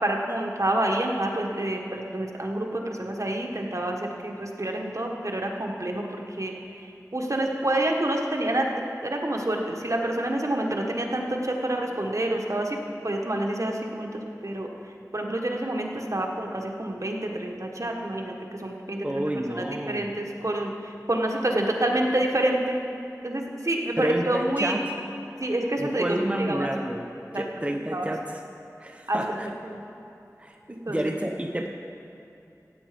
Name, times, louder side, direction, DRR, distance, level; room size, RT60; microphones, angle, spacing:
voice 1, 0.0-14.7 15.1-22.8 23.2-24.8 25.4-26.7 27.3-27.6 27.9-28.2 29.1-29.8 30.8-31.3, right 1 dB, 55° right, 1 dB, 1.4 m, -28 dB
voice 2, 19.0-20.1 24.0-24.8 25.8-27.1 27.3-28.4 28.8-29.5 30.4-30.6 30.9-31.7, right 1 dB, 20° right, 2 dB, 0.9 m, -29 dB
15.0 x 9.1 x 5.2 m, 2.8 s
wide cardioid pair, 45°, 6 cm